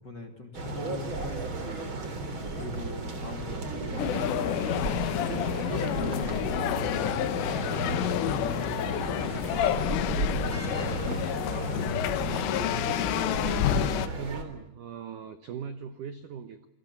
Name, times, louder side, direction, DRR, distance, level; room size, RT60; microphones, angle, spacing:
voice 1, 0.0-5.0 5.7-7.5 8.0-11.9 12.2-13.2, left 2 dB, 30° left, 6 dB, 2.2 m, -42 dB
sound 1, 0.5-14.4, right 3 dB, 30° right, 3.5 m, -34 dB
sound 2, 4.0-14.1, left 11 dB, 90° left, 3.8 m, -29 dB
Wind instrument woodwind instrument, 9.4-14.1, left 6 dB, 65° left, 2.5 m, -45 dB
voice 2, 14.1-16.7, right 7 dB, 75° right, 10 dB, 1.9 m, -39 dB
29.5 x 23.0 x 8.2 m, 0.82 s
omnidirectional pair, 5.5 m